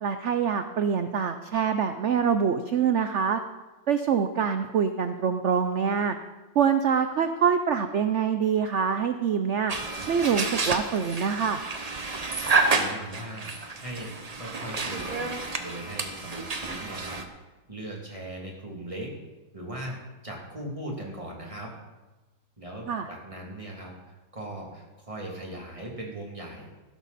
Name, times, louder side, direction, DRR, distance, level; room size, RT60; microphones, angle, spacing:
voice 1, 0.0-3.4 3.9-6.2 6.5-9.7 10.1-11.6 22.9-23.1, right 7 dB, 80° right, 9 dB, 0.6 m, -25 dB
sound 1, 9.7-17.2, right 3 dB, 30° right, 0.7 m, -30 dB
voice 2, 12.7-17.2 17.7-19.1 19.5-20.0 20.2-21.7 22.6-26.7, right 1 dB, 15° right, -2 dB, 2.7 m, -39 dB
15.5 x 12.5 x 4.2 m, 1.2 s
omnidirectional pair, 2.0 m